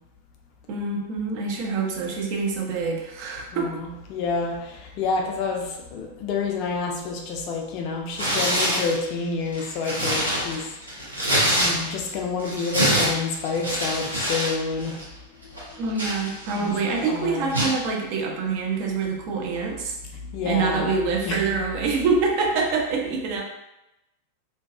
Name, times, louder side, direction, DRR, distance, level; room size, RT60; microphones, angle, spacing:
voice 1, 0.7-3.8 15.8-20.0 20.4-23.4, right 4 dB, 45° right, 0 dB, 0.4 m, -26 dB
voice 2, 3.5-4.6 5.0-10.6 11.6-14.9 16.5-17.5 20.3-20.9 21.3-21.6, left 4 dB, 40° left, 1 dB, 0.4 m, -28 dB
Tearing, 8.1-8.9 9.5-12.1 12.4-14.5 14.8-15.0 15.6-16.7 17.5-17.8, equal, 85° right, 0.7 m, -25 dB
2.6 x 2.2 x 2.3 m, 0.91 s
figure-of-eight pair, 90°, 0 cm